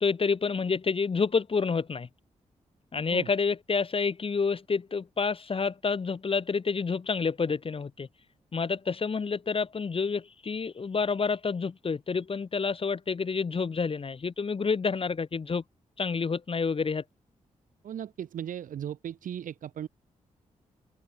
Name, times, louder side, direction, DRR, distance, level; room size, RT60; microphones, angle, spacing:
voice 1, 0.0-2.1 2.9-8.1 8.5-15.6 16.0-17.0, left 5 dB, 40° left, 1.0 m, -28 dB
voice 2, 17.8-19.9, right 10 dB, 75° right, 2.3 m, -37 dB
supercardioid pair, 45°, 14 cm